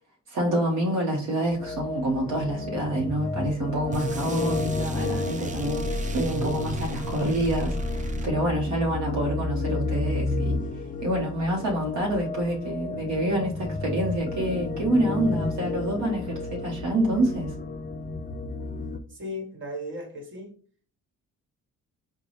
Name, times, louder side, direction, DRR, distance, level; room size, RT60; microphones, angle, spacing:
voice 1, 0.3-10.6 11.0-17.6, right 1 dB, 65° right, 0.9 m, -27 dB
sound 1, 1.5-19.0, left 3 dB, 30° left, 0.4 m, -32 dB
sound 2, 3.9-8.7, right 1 dB, 25° right, 0.5 m, -33 dB
voice 2, 19.1-20.5, left 1 dB, 40° right, 1.3 m, -36 dB
3.9 x 2.2 x 3.2 m
cardioid pair, 90°, 30 cm